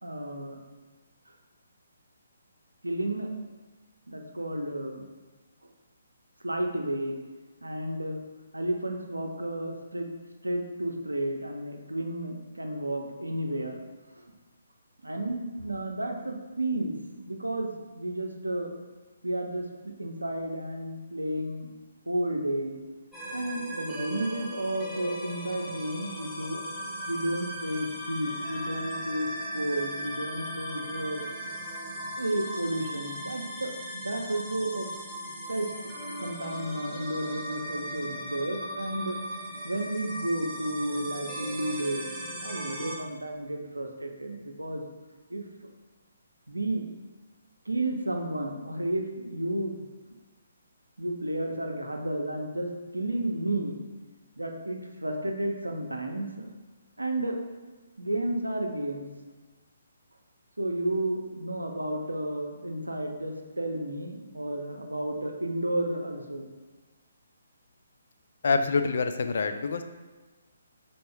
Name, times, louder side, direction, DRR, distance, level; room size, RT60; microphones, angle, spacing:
voice 1, 0.0-0.6 2.8-3.3 4.1-5.1 6.4-7.2 7.6-8.2 8.5-10.1 10.4-13.8 14.1-14.2 15.0-18.7 19.2-21.7 22.1-22.8 23.3-26.6 27.1-31.2 32.2-34.9 35.5-35.9 36.2-39.2 39.6-42.1 42.3-44.9 45.3-45.5 46.5-46.9 47.7-49.9 51.0-53.8 54.4-56.5 57.0-57.4 58.0-59.1 60.6-66.5, right 1 dB, 85° right, 3 dB, 0.6 m, -32 dB
sound 1, 23.1-43.0, right 1 dB, ahead, 0.8 m, -38 dB
voice 2, 68.4-69.8, left 4 dB, 55° left, 8 dB, 0.3 m, -26 dB
4.1 x 3.4 x 3.3 m, 1.2 s
figure-of-eight pair, 135°, 0 cm